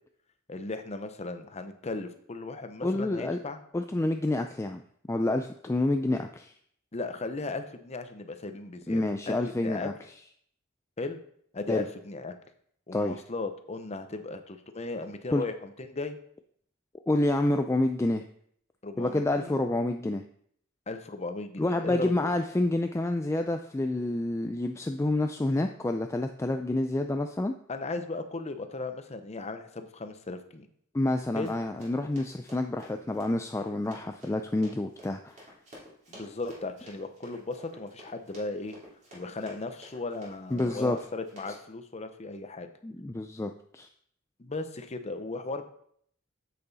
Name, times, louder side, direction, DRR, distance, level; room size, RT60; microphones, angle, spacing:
voice 1, 0.5-3.6 6.9-9.9 11.0-11.2 11.5-12.4 12.9-16.2 18.8-19.6 20.9-22.1 27.7-30.7 31.4-31.6 36.1-38.8 39.1-42.7 44.4-45.7, left 3 dB, 35° left, 8 dB, 0.7 m, -36 dB
voice 2, 2.8-3.4 3.7-4.8 5.1-6.5 8.9-9.9 11.7-11.8 12.9-13.2 15.3-15.4 17.1-18.3 19.0-20.2 21.6-27.5 30.9-35.2 40.5-41.0 42.8-43.9, left 2 dB, 15° left, 6 dB, 0.3 m, -28 dB
Run, 31.4-41.6, equal, 40° right, 3.1 m, -51 dB
7.7 x 6.8 x 4.0 m, 0.64 s
head